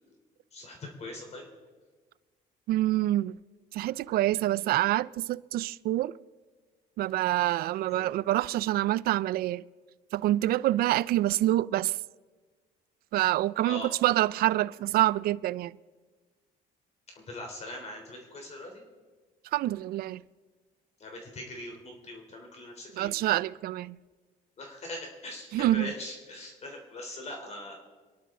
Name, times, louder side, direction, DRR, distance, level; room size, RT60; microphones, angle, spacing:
voice 1, 0.5-1.5 7.9-8.1 13.6-13.9 17.1-18.8 21.0-23.1 24.6-27.7, left 1 dB, 40° left, 3.3 m, -41 dB
voice 2, 2.7-3.4 3.7-6.1 7.0-9.6 10.1-12.0 13.1-15.7 19.5-20.2 22.9-24.0 25.5-25.9, right 15 dB, 65° right, 0.4 m, -26 dB
26.5 x 11.0 x 3.7 m
cardioid pair, 110°, 17 cm